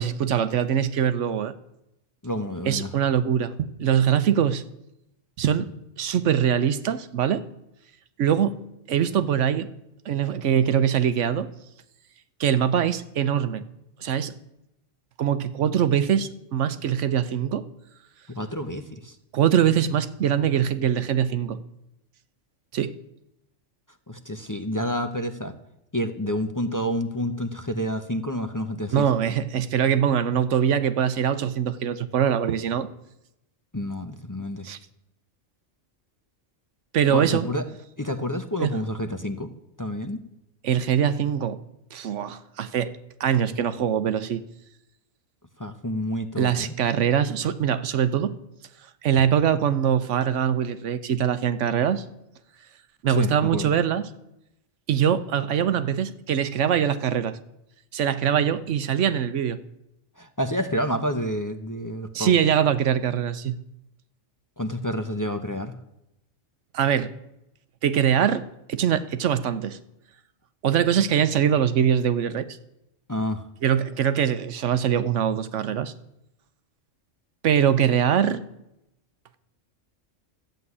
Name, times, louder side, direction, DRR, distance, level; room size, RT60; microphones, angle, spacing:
voice 1, 0.0-1.5 2.7-4.6 5.4-5.7 6.0-7.4 8.2-8.6 8.9-9.7 10.1-11.5 12.4-13.6 14.0-14.3 15.2-17.7 19.3-21.6 22.7-22.9 28.9-32.9 34.6-34.8 36.9-37.5 38.6-38.7 40.6-41.6 41.9-44.4 46.4-48.3 49.0-52.0 53.0-54.1 54.9-57.4 57.9-59.6 62.1-63.6 66.7-67.1 67.8-69.8 70.6-72.6 73.6-75.9 77.4-78.4, right 9 dB, 75° right, 13 dB, 1.0 m, -23 dB
voice 2, 2.2-2.9 18.3-19.2 24.1-25.5 25.9-29.1 33.7-34.7 37.1-37.7 38.0-39.5 39.8-40.2 45.6-46.7 53.1-53.7 60.2-62.4 64.6-65.7 73.1-73.5, equal, 20° left, 7 dB, 0.7 m, -29 dB
13.5 x 7.8 x 9.7 m, 0.86 s
omnidirectional pair, 1.3 m